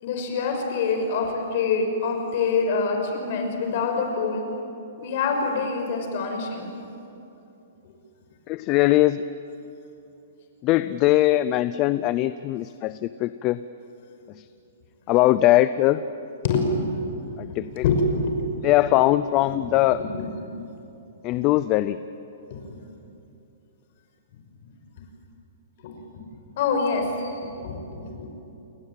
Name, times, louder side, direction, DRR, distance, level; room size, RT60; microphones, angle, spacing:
voice 1, 0.0-4.5 5.0-6.7 16.4-17.2 17.7-18.5 19.4-19.5 20.0-20.3 22.5-22.6 25.8-25.9 26.6-28.3, left 4 dB, 45° left, 3 dB, 5.7 m, -25 dB
voice 2, 8.5-9.2 10.6-13.6 15.1-16.0 17.4-17.8 18.6-20.0 21.2-22.0, left 15 dB, 25° left, 14 dB, 0.5 m, -21 dB
29.5 x 22.0 x 8.9 m, 2.9 s
hypercardioid pair, 170°, 0 cm